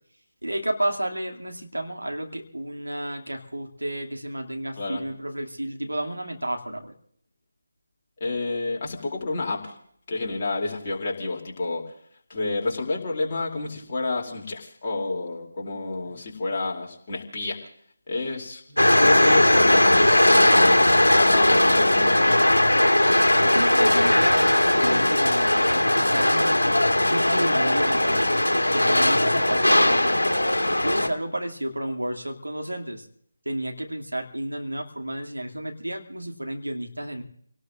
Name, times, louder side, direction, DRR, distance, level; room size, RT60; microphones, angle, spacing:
voice 1, 0.4-6.9 23.1-26.8 27.0-28.3 28.7-30.2 30.8-33.1 33.5-37.2, right 1 dB, 75° right, 2 dB, 2.3 m, -31 dB
voice 2, 8.2-9.8 10.1-11.9 12.3-17.6 18.1-22.2, left 3 dB, 30° left, -1 dB, 2.7 m, -29 dB
sound 1, 18.8-31.1, left 1 dB, 70° left, 1.6 m, -19 dB
29.0 x 18.5 x 2.5 m, 0.66 s
figure-of-eight pair, 155°, 0 cm